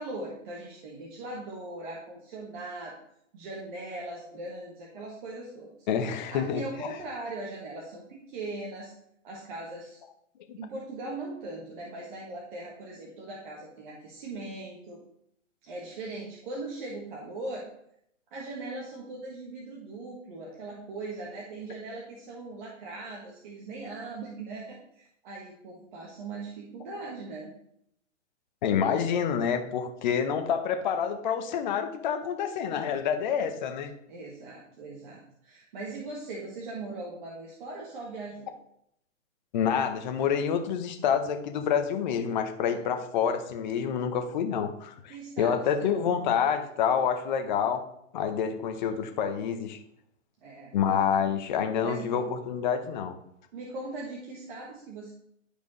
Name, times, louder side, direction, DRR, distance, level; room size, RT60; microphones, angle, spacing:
voice 1, 0.0-3.0 3.3-5.7 6.3-8.9 9.2-10.0 10.6-15.0 15.6-17.7 18.3-27.5 34.1-38.5 42.7-42.9 45.1-46.1 50.4-50.7 51.8-52.2 53.5-55.1, right 2 dB, 40° right, -3 dB, 1.7 m, -40 dB
voice 2, 5.9-6.6 10.5-10.6 28.6-33.9 39.5-47.8 48.1-49.8 50.7-53.1, left 7 dB, 35° left, 6 dB, 0.9 m, -28 dB
11.5 x 5.0 x 3.2 m, 0.72 s
hypercardioid pair, 150°, 39 cm